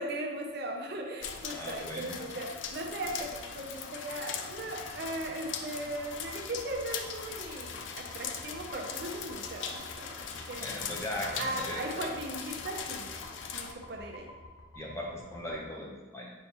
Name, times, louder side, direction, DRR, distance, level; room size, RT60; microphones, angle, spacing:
voice 1, 0.0-7.8 8.1-10.7 11.2-13.1 13.5-14.3, right 1 dB, 50° right, 1 dB, 0.5 m, -38 dB
sound 1, 1.2-13.7, left 6 dB, 65° left, 0.4 m, -40 dB
voice 2, 1.5-2.2 10.6-12.1 14.8-16.3, left 1 dB, 15° left, -3 dB, 0.6 m, -38 dB
sound 2, 6.0-15.6, left 1 dB, 90° left, 0.7 m, -51 dB
5.3 x 3.3 x 2.9 m, 1.3 s
head